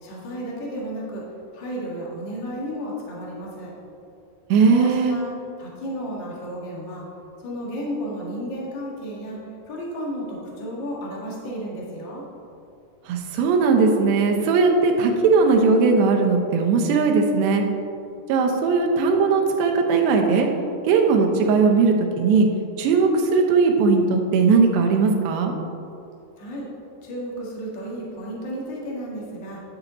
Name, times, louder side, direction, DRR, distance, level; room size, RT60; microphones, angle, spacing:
voice 1, 0.0-1.2 1.5-3.7 4.7-5.3 5.6-7.1 7.4-9.4 9.7-12.2 26.4-26.7 27.0-29.6, equal, 50° left, -4 dB, 1.4 m, -33 dB
voice 2, 4.5-5.2 13.1-17.7 18.3-20.5 20.9-22.5 22.8-25.5, right 4 dB, 90° right, 2 dB, 3.1 m, -18 dB
10.5 x 7.1 x 3.9 m, 2.7 s
omnidirectional pair, 4.8 m